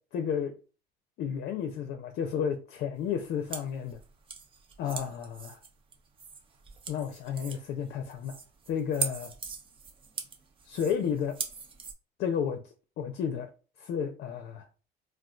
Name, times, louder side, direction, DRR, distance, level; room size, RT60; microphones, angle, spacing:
voice 1, 0.1-0.5 1.2-4.0 4.8-5.6 6.9-8.4 8.7-9.3 10.6-11.4 12.2-12.6 13.0-13.5 13.8-14.7, left 7 dB, 55° left, 0.5 m, -32 dB
sound 1, 3.0-11.9, right 5 dB, 25° right, 0.5 m, -41 dB
3.7 x 2.4 x 2.3 m
cardioid pair, 135°, 20 cm